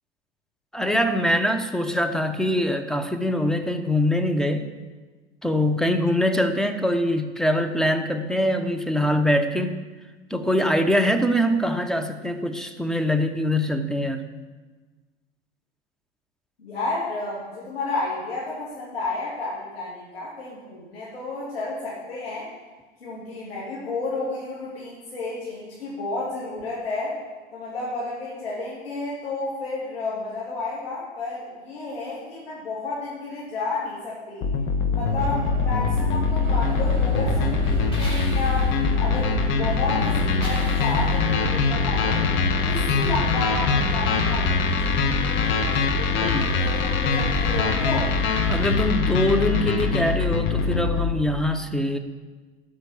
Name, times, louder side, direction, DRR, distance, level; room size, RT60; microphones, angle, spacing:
voice 1, 0.7-4.7 5.4-9.7 10.3-14.2 46.1-46.6 48.5-52.0, left 1 dB, ahead, 7 dB, 0.9 m, -23 dB
voice 2, 16.6-22.5 23.0-27.2 27.5-34.5 34.8-42.2 42.6-48.1, left 3 dB, 90° left, -7 dB, 2.7 m, -31 dB
sound 1, 34.4-51.1, left 4 dB, 45° left, 1.2 m, -23 dB
Musical instrument, 35.2-45.1, left 3 dB, 45° right, 1.2 m, -31 dB
sound 2, 36.4-48.8, right 2 dB, 20° left, 3.3 m, -33 dB
12.0 x 5.1 x 7.2 m, 1.3 s
hypercardioid pair, 90°, 29 cm